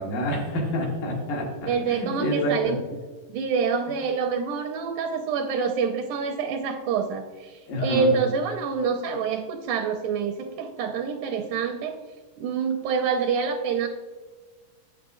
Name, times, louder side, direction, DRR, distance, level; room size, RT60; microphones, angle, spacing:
voice 1, 0.0-2.7 7.7-8.1, equal, 75° left, -2 dB, 3.2 m, -28 dB
voice 2, 1.7-2.8 3.3-12.0 12.4-13.9, right 5 dB, 80° right, 4 dB, 1.9 m, -26 dB
8.3 x 7.8 x 2.6 m, 1.4 s
omnidirectional pair, 3.7 m